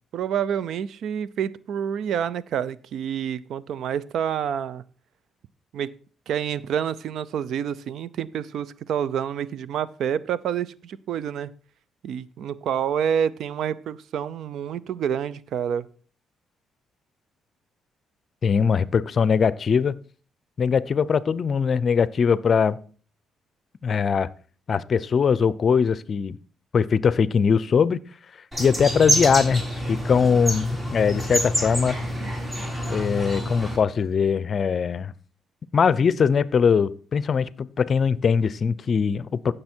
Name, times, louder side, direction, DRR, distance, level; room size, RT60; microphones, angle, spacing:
voice 1, 0.1-4.8 5.7-6.0 6.3-11.6 12.0-15.9, right 8 dB, 70° right, 19 dB, 0.6 m, -28 dB
voice 2, 18.4-20.0 20.6-22.8 23.8-24.3 24.7-26.4 26.7-28.0 28.6-32.0 32.9-35.1 35.7-39.5, left 6 dB, 45° left, 19 dB, 0.6 m, -21 dB
sound 1, 28.5-33.8, equal, 20° right, 3.9 m, -27 dB
15.0 x 6.7 x 4.5 m, 0.41 s
cardioid pair, 90°, 0 cm